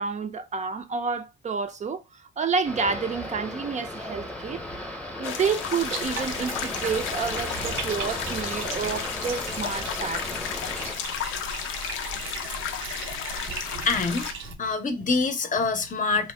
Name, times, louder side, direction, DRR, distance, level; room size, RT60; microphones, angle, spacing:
voice 1, 0.0-4.6 5.2-10.3 12.1-12.2 13.5-13.9, right 5 dB, 35° right, 0.4 m, -29 dB
sound 1, 2.6-11.0, left 1 dB, 5° left, 0.7 m, -36 dB
sound 2, 5.2-14.3, left 9 dB, 85° left, 0.4 m, -33 dB
Bathtub (filling or washing), 5.8-14.5, right 5 dB, 85° right, 0.5 m, -38 dB
voice 2, 13.9-16.3, left 4 dB, 40° left, 0.6 m, -26 dB
2.6 x 2.1 x 3.2 m
cardioid pair, 90°, 20 cm